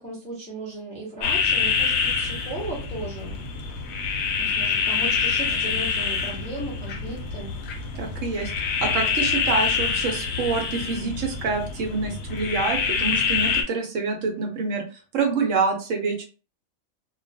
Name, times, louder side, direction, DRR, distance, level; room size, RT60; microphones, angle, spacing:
voice 1, 0.0-3.4 4.4-7.5, right 2 dB, 10° left, -3 dB, 0.4 m, -36 dB
sound 1, 1.2-13.6, left 6 dB, 65° left, 0.7 m, -26 dB
voice 2, 8.0-16.2, right 4 dB, 70° right, 3 dB, 0.9 m, -27 dB
2.3 x 2.2 x 2.6 m, 0.35 s
omnidirectional pair, 1.5 m